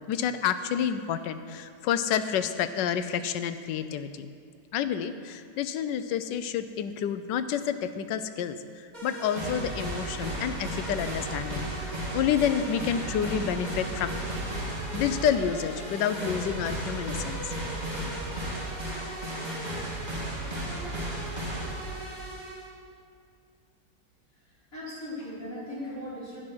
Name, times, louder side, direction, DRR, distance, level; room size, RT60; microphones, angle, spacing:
voice 1, 0.1-4.3 4.7-8.6 9.0-14.2 14.9-17.4, left 8 dB, 75° left, 10 dB, 1.3 m, -29 dB
sound 1, 8.9-22.7, right 1 dB, 25° right, 2.1 m, -34 dB
voice 2, 24.3-26.4, left 1 dB, 45° left, -8 dB, 4.1 m, -39 dB
11.0 x 9.7 x 6.1 m, 2.4 s
omnidirectional pair, 2.0 m